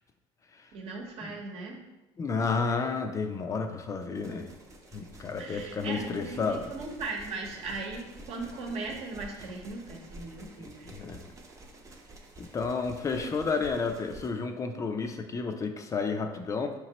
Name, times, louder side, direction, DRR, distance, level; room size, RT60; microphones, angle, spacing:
voice 1, 0.7-1.8 3.5-3.7 5.0-5.1 5.4-11.0 13.2-13.3, right 3 dB, 65° right, 1 dB, 0.9 m, -38 dB
voice 2, 2.2-4.5 4.9-6.7 10.6-11.2 12.4-16.7, left 4 dB, 30° left, 5 dB, 0.4 m, -31 dB
sound 1, 4.1-14.3, right 1 dB, 30° right, 0.6 m, -49 dB
4.9 x 3.0 x 2.8 m, 1.1 s
supercardioid pair, 100°, 11 cm